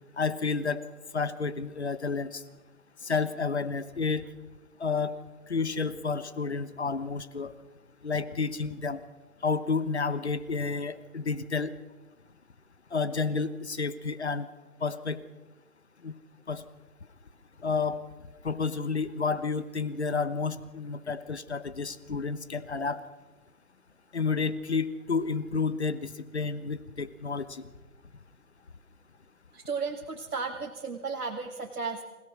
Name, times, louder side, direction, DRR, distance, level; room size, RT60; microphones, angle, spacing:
voice 1, 0.2-0.8 1.1-2.4 3.0-4.2 4.8-5.2 5.5-7.5 8.0-9.0 9.4-11.7 12.9-14.5 14.8-15.2 16.0-16.1 16.5-16.6 17.6-18.0 18.4-23.0 24.1-27.6, left 4 dB, 50° left, 14 dB, 1.2 m, -30 dB
voice 2, 29.5-32.0, right 4 dB, 85° right, 1 dB, 2.6 m, -34 dB
26.0 x 17.0 x 6.3 m, 1.2 s
hypercardioid pair, 175°, 44 cm